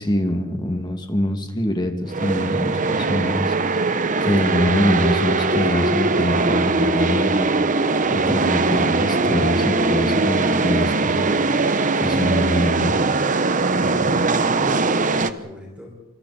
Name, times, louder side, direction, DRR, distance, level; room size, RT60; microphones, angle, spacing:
voice 1, 0.0-7.5 8.1-11.3 12.0-13.0, equal, 20° left, 4 dB, 2.5 m, -24 dB
sound 1, 2.1-15.3, right 3 dB, 40° right, 1.0 m, -20 dB
voice 2, 13.7-15.9, equal, 5° right, -1 dB, 5.6 m, -38 dB
28.0 x 27.5 x 4.4 m, 1.0 s
head